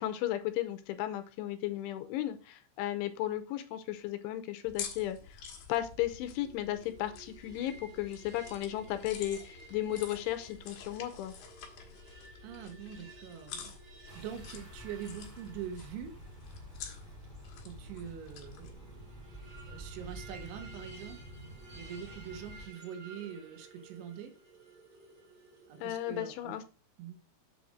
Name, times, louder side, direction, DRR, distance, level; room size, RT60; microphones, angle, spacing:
voice 1, 0.0-5.4 5.7-11.3 25.8-26.6, left 13 dB, 85° left, 10 dB, 3.1 m, -35 dB
sound 1, 4.7-18.7, left 7 dB, 60° left, 2.7 m, -48 dB
sound 2, 6.4-26.2, right 3 dB, 35° right, 1.5 m, -55 dB
voice 2, 12.4-13.8 14.2-16.1 17.7-19.1 19.7-21.2 21.7-24.3 25.7-26.6 27.0-27.2, right 8 dB, 75° right, 6 dB, 3.5 m, -44 dB
sound 3, 14.1-22.7, right 1 dB, 15° right, 2.3 m, -49 dB
7.9 x 4.2 x 6.3 m, 0.34 s
omnidirectional pair, 5.7 m